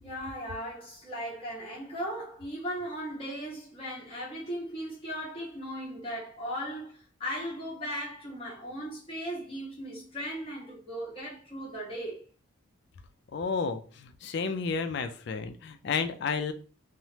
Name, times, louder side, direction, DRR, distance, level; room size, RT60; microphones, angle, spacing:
voice 1, 0.0-12.2, equal, 25° left, 1.1 m, -37 dB
voice 2, 13.3-16.5, left 5 dB, 55° left, 0.3 m, -31 dB
3.2 x 2.0 x 2.8 m
head